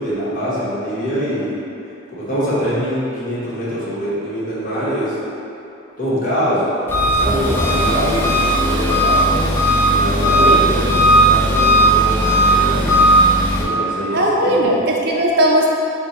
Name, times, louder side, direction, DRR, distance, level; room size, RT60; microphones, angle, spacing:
voice 1, 0.0-1.5 2.1-5.1 6.0-6.6 7.0-9.5 9.8-13.1 13.6-14.8, equal, 45° left, -10 dB, 1.2 m, -23 dB
Engine, 6.9-13.6, right 1 dB, 10° left, 0.5 m, -15 dB
voice 2, 14.1-15.7, right 1 dB, 55° right, -2 dB, 0.5 m, -17 dB
4.5 x 2.2 x 4.1 m, 2.9 s
head